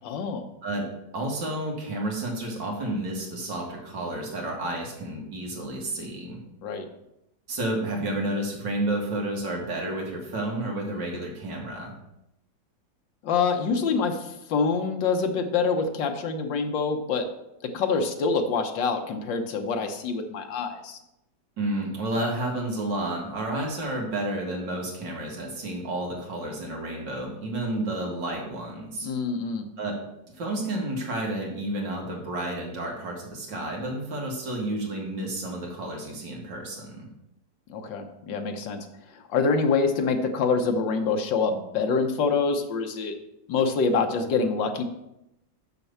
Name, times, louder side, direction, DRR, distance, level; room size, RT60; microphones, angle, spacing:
voice 1, 0.0-0.5 6.6-6.9 13.2-17.2 17.7-21.0 29.0-29.7 37.7-38.9 39.1-43.1 43.5-44.8, left 4 dB, 90° left, 5 dB, 1.7 m, -26 dB
voice 2, 1.1-6.4 7.5-12.0 21.6-29.1 29.8-30.0 30.3-37.1, right 1 dB, 80° right, 0 dB, 2.6 m, -31 dB
6.8 x 5.9 x 6.8 m, 0.85 s
omnidirectional pair, 1.9 m